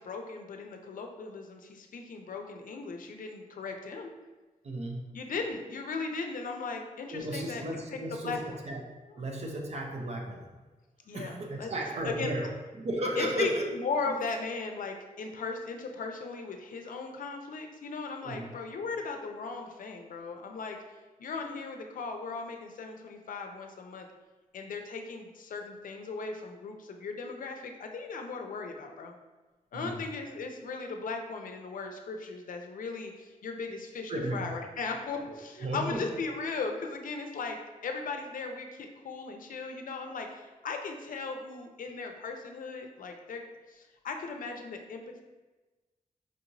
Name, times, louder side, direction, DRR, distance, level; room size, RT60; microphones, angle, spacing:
voice 1, 0.0-4.1 5.1-8.6 9.1-9.3 11.1-11.7 12.0-12.3 13.2-20.8 21.2-24.1 24.5-29.1 29.7-37.6 37.8-43.4 43.7-45.2, left 4 dB, 70° left, 4 dB, 0.5 m, -37 dB
voice 2, 4.6-5.0 7.1-8.8 9.2-10.5 11.1-12.5 12.7-13.6 18.2-18.4 29.7-30.0 34.1-34.4 35.6-36.0, right 1 dB, 50° right, 1 dB, 0.5 m, -34 dB
4.7 x 2.9 x 2.6 m, 1.2 s
wide cardioid pair, 140°, 14 cm